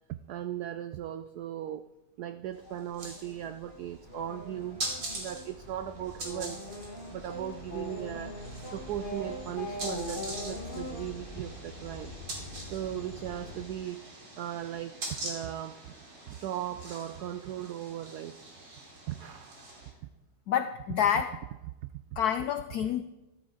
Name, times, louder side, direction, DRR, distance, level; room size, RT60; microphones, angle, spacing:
voice 1, 0.1-1.8 2.2-4.8 5.1-6.6 7.1-8.4 8.7-12.1 12.6-14.0 14.4-15.9 16.3-18.4 19.1-19.6 21.8-22.2, right 11 dB, 85° right, 11 dB, 0.8 m, -38 dB
sound 1, 2.5-19.9, right 2 dB, 65° right, 3.3 m, -44 dB
sound 2, 2.7-13.7, left 1 dB, 30° left, 1.2 m, -42 dB
sound 3, 4.0-9.8, right 2 dB, 25° right, 2.1 m, -57 dB
voice 2, 20.5-21.4 22.2-23.0, left 9 dB, 85° left, 10 dB, 0.8 m, -28 dB
13.5 x 12.5 x 4.0 m, 1.0 s
omnidirectional pair, 2.2 m